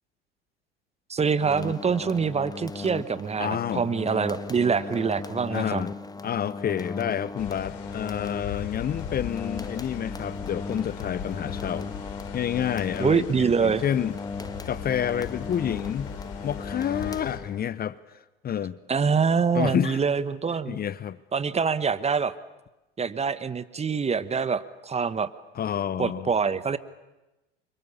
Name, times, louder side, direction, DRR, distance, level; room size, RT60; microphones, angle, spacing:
voice 1, 1.1-5.8 13.0-13.8 18.9-20.8 21.3-22.3 23.0-25.3 26.0-26.8, right 5 dB, 20° right, 1.2 m, -25 dB
sound 1, 1.4-17.8, left 3 dB, 10° left, 1.5 m, -37 dB
voice 2, 3.4-3.9 5.5-5.9 6.2-14.2 14.7-16.1 16.4-18.0 18.4-18.8 19.5-20.0 20.7-21.2 25.5-26.3, left 9 dB, 30° left, 1.0 m, -29 dB
sound 2, 7.4-17.4, left 9 dB, 50° left, 3.7 m, -39 dB
28.5 x 25.0 x 7.2 m
hypercardioid pair, 75°, 31 cm